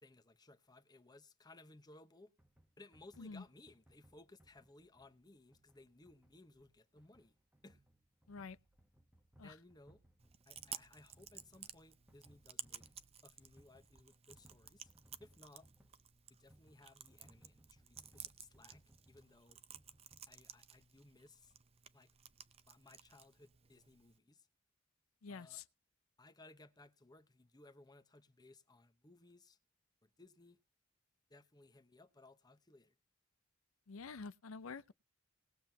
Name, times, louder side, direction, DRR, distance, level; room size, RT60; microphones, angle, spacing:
voice 1, 0.0-2.3 2.8-7.3 7.6-7.8 9.4-10.0 10.5-12.9 13.2-14.9 15.2-15.7 16.3-19.6 20.3-21.5 21.9-22.1 22.7-24.5 25.3-25.6 26.2-29.6 30.0-30.6 31.3-32.9, left 2 dB, 20° left, 0.9 m, -61 dB
sound 1, 2.4-20.8, right 1 dB, 5° right, 1.1 m, -68 dB
Chewing mastication, 10.2-24.2, right 9 dB, 30° right, 0.6 m, -55 dB
voice 2, 25.2-25.6 33.9-34.9, left 4 dB, 85° left, 0.6 m, -48 dB
20.0 x 7.4 x 2.8 m
head